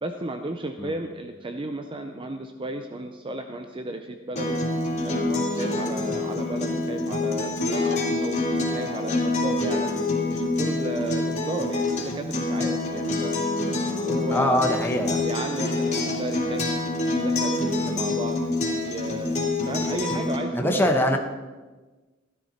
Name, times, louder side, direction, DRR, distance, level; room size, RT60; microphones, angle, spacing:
voice 1, 0.0-4.6 5.0-10.0 10.3-13.5 14.0-14.6 14.9-16.8 17.2-18.4 18.8-21.2, right 2 dB, 25° right, 6 dB, 0.6 m, -34 dB
Acoustic guitar, 4.4-20.4, left 2 dB, 35° left, 3.0 m, -26 dB
voice 2, 14.3-15.3 19.6-19.8 20.5-21.2, left 1 dB, 10° left, 3 dB, 1.1 m, -23 dB
15.0 x 12.5 x 4.3 m, 1.3 s
head